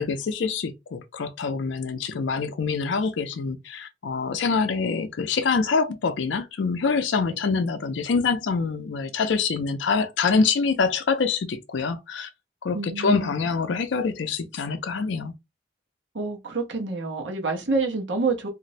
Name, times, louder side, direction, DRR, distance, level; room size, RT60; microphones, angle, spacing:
voice 1, 0.0-12.3 12.6-15.3, left 4 dB, 90° left, 0.4 m, -25 dB
voice 2, 12.7-13.3 16.1-18.5, right 3 dB, 90° right, 0.8 m, -27 dB
2.5 x 2.0 x 3.9 m
head